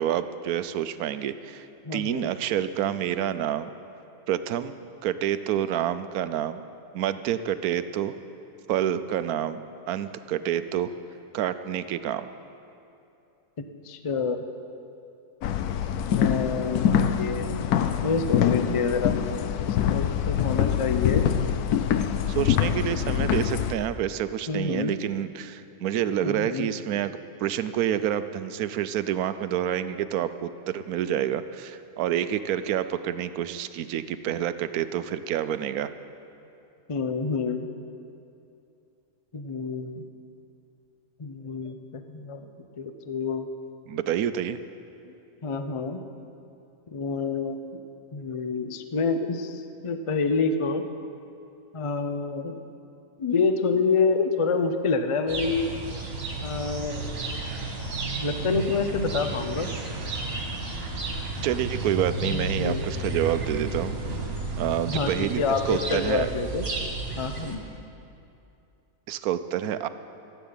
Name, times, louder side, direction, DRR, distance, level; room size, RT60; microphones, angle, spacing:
voice 1, 0.0-1.7 1.9-3.7 4.3-4.7 5.0-6.6 6.9-8.1 8.7-10.9 11.3-12.3 22.3-35.9 43.9-44.6 61.4-63.9 64.6-66.3 69.1-69.9, right 10 dB, 80° right, 12 dB, 1.1 m, -28 dB
voice 2, 1.8-2.3 13.6-14.4 16.2-17.6 18.0-19.2 19.6-21.3 22.8-23.1 24.5-25.0 26.2-26.7 36.9-37.7 39.3-40.0 41.2-42.5 42.8-43.5 45.0-45.1 45.4-46.0 46.9-47.8 48.1-50.8 51.7-52.6 53.2-55.7 56.4-57.1 58.1-59.7 62.1-62.9 64.9-66.7 67.2-67.6, left 4 dB, 45° left, 8 dB, 0.4 m, -28 dB
sound 1, 15.4-23.7, left 9 dB, 90° left, 1.2 m, -25 dB
sound 2, 55.3-67.6, right 2 dB, 65° right, 2.1 m, -32 dB
14.0 x 8.2 x 8.7 m, 2.7 s
omnidirectional pair, 1.6 m